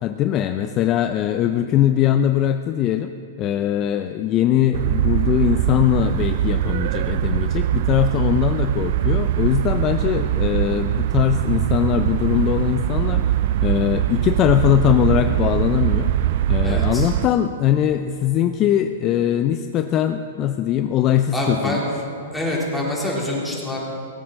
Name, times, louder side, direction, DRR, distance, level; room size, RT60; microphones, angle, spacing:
voice 1, 0.0-3.1 3.4-16.1 16.5-21.8, left 11 dB, 35° left, 8 dB, 0.5 m, -21 dB
sound 1, 4.7-17.3, right 12 dB, 55° right, 0.4 m, -22 dB
voice 2, 16.6-17.1 21.3-21.9 22.3-23.8, left 1 dB, 5° left, -5 dB, 3.6 m, -26 dB
18.0 x 8.7 x 6.4 m, 2.6 s
hypercardioid pair, 130°, 0 cm